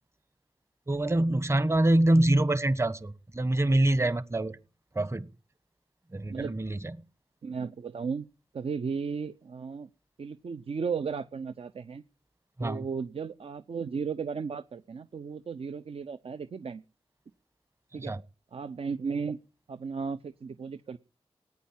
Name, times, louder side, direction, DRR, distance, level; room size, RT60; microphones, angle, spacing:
voice 1, 0.9-4.6 4.9-5.3 6.1-7.0 12.6-12.9 18.0-18.2, right 1 dB, 25° right, 15 dB, 1.3 m, -25 dB
voice 2, 7.4-8.3 8.5-9.9 10.2-12.0 12.6-16.8 17.9-18.2 18.5-19.4 19.7-21.0, right 5 dB, 65° right, 12 dB, 0.8 m, -35 dB
18.5 x 9.4 x 7.4 m, 0.35 s
cardioid pair, 65°, 10 cm